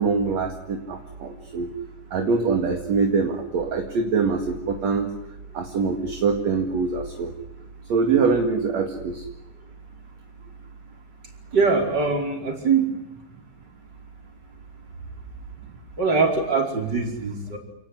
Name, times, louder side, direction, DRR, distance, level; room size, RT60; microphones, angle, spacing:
voice 1, 0.0-1.7 2.1-5.1 5.5-7.3 7.9-9.2, right 4 dB, 45° right, 4 dB, 2.6 m, -24 dB
voice 2, 11.5-12.9 16.0-17.6, right 4 dB, 25° right, 3 dB, 5.0 m, -22 dB
29.0 x 19.0 x 9.8 m, 0.91 s
omnidirectional pair, 5.3 m